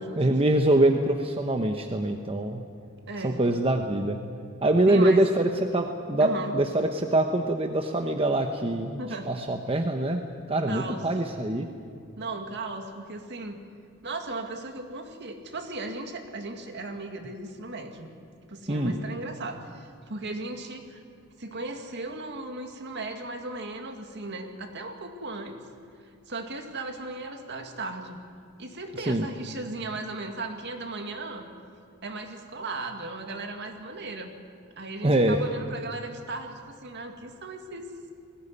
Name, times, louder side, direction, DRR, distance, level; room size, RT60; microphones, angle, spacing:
voice 1, 0.2-2.6 3.2-4.2 4.6-10.2 10.5-11.7 18.7-19.0 29.1-29.3 35.0-35.4, right 1 dB, 25° right, 4 dB, 1.0 m, -24 dB
voice 2, 3.0-3.4 4.9-5.3 6.2-6.5 9.0-9.3 10.7-11.0 12.2-13.6 14.0-18.1 18.5-21.0 21.4-25.6 26.0-28.2 28.6-31.5 32.0-34.4 34.8-37.8, right 2 dB, 55° right, 4 dB, 2.2 m, -36 dB
20.5 x 17.0 x 9.9 m, 2.3 s
head